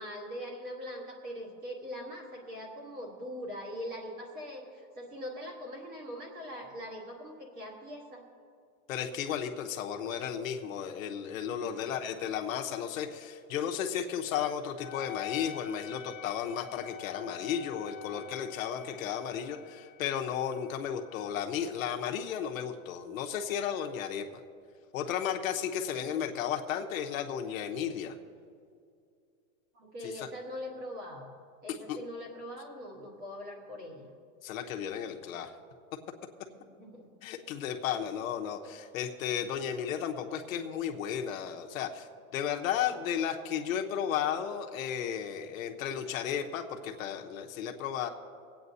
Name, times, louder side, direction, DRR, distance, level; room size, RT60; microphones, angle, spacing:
voice 1, 0.0-8.3 11.5-11.9 29.7-31.3 31.6-34.1 36.6-37.1, equal, 20° right, 0 dB, 1.3 m, -42 dB
voice 2, 8.9-24.3 24.9-28.2 30.0-30.3 31.7-32.0 34.4-35.5 37.2-42.1 42.3-48.1, left 8 dB, 75° left, 4 dB, 1.0 m, -34 dB
Wind instrument woodwind instrument, 14.8-23.7, left 12 dB, 35° left, 1.2 m, -48 dB
24.5 x 8.8 x 2.7 m, 2.3 s
supercardioid pair, 180°, 41 cm